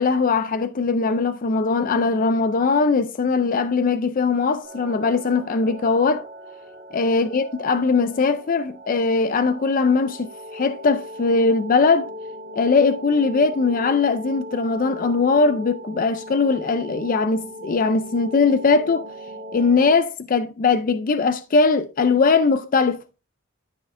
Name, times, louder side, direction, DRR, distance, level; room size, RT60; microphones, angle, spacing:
voice 1, 0.0-6.2 6.9-12.1 12.5-19.0 19.5-23.0, left 4 dB, 40° left, 0.4 m, -20 dB
sound 1, 4.6-19.9, equal, 55° right, 2.6 m, -38 dB
13.0 x 5.6 x 2.6 m
head